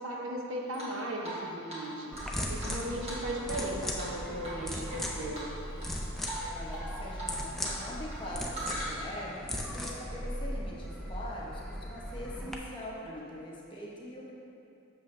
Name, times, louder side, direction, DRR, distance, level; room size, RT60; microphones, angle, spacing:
voice 1, 0.0-2.1 2.5-5.5, right 1 dB, 70° right, -1 dB, 0.9 m, -37 dB
Drip, 0.7-1.4 1.7-1.8 2.1-3.7 4.0-4.1 4.4-5.0 5.3-5.9 6.2-6.4 6.7-7.8 8.0-9.2, right 1 dB, 30° right, 1.5 m, -40 dB
sound 1, 2.1-12.5, equal, ahead, 0.4 m, -38 dB
voice 2, 6.5-14.3, equal, 25° left, -5 dB, 1.0 m, -42 dB
7.6 x 6.5 x 3.2 m, 2.7 s
head